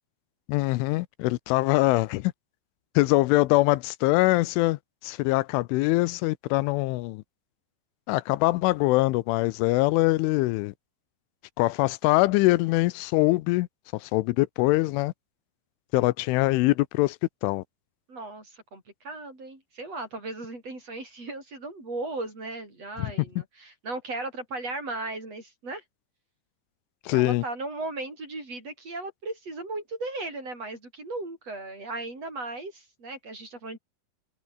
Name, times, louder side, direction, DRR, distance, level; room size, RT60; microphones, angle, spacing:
voice 1, 0.5-2.3 3.0-7.2 8.1-10.7 11.6-13.7 13.9-15.1 15.9-17.2 17.4-17.6 23.0-23.1 27.1-27.4, left 20 dB, 90° left, 3.2 m, -23 dB
voice 2, 18.1-25.8 27.1-33.8, right 2 dB, 30° right, 9.1 m, -36 dB
omnidirectional pair, 5.5 m